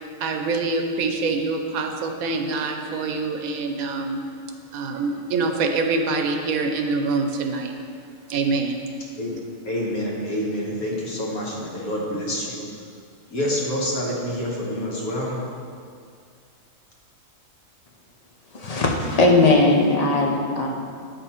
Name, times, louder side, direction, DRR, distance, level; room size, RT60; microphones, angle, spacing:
voice 1, 0.2-4.2 4.7-7.7 8.3-8.8, right 3 dB, 80° right, 4 dB, 1.1 m, -25 dB
voice 2, 9.6-12.7 13.3-15.4, equal, 85° left, -4 dB, 1.9 m, -27 dB
voice 3, 18.5-20.7, left 2 dB, 35° left, 0 dB, 0.8 m, -18 dB
8.9 x 5.3 x 4.4 m, 2.2 s
omnidirectional pair, 1.5 m